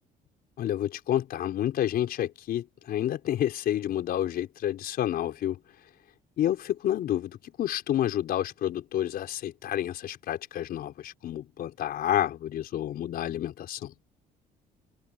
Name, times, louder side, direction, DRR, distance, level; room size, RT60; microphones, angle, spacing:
voice 1, 0.6-5.6 6.4-13.9, left 11 dB, 65° left, 5.0 m, -29 dB
cardioid pair, 110°, 17 cm